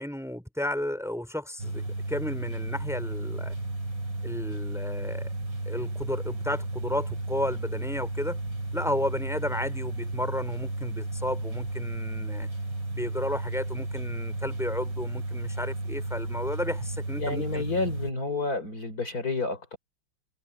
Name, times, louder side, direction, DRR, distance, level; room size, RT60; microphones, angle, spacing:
voice 1, 0.0-3.5 4.2-5.3 5.6-8.4 8.7-12.5 12.9-17.6, left 1 dB, ahead, 5.0 m, -33 dB
sound 1, 1.6-18.1, right 2 dB, 75° right, 7.6 m, -33 dB
voice 2, 17.2-19.8, left 3 dB, 45° left, 4.5 m, -30 dB
omnidirectional pair, 2.1 m